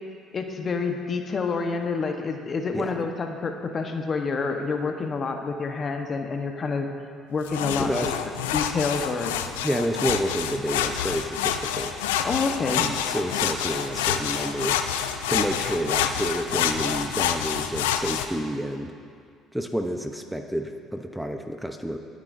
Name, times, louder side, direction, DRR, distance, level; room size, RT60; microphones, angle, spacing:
voice 1, 0.3-6.9 7.3-8.1 8.5-9.3 12.2-12.8, left 4 dB, 40° left, 4 dB, 1.2 m, -28 dB
sound 1, 7.5-18.3, left 9 dB, 85° left, 0.5 m, -27 dB
voice 2, 7.8-8.1 9.6-12.0 12.6-14.8 15.3-18.9 19.5-22.0, equal, 5° right, 5 dB, 0.9 m, -29 dB
20.5 x 9.7 x 2.7 m, 2.2 s
hypercardioid pair, 65°, 0 cm